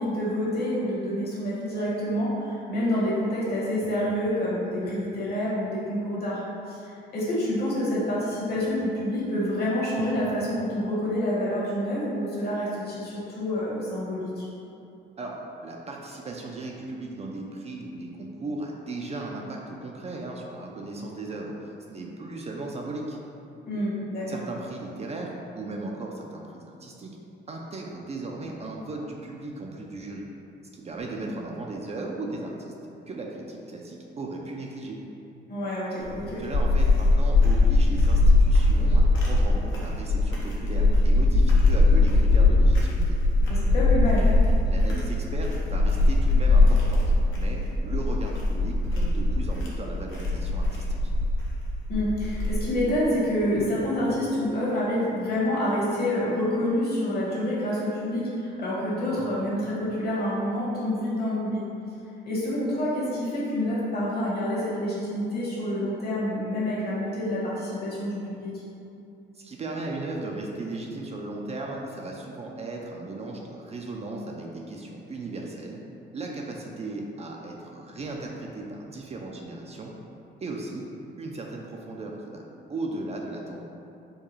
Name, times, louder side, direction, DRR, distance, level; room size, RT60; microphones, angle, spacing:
voice 1, 0.0-14.5 23.7-24.4 35.5-36.4 43.5-44.3 51.9-61.6 62.2-68.5, left 1 dB, 50° left, -7 dB, 1.3 m, -27 dB
voice 2, 15.2-23.2 24.3-27.2 27.5-30.3 30.7-32.7 33.1-35.0 36.4-43.2 44.6-47.0 47.3-51.1 69.3-75.8 76.1-79.9 80.4-80.9 81.2-82.4 82.7-83.6, right 2 dB, 35° right, -1 dB, 0.4 m, -36 dB
sound 1, 36.0-52.9, left 2 dB, 80° left, 0.8 m, -21 dB
4.6 x 2.2 x 3.1 m, 2.7 s
cardioid pair, 90°, 20 cm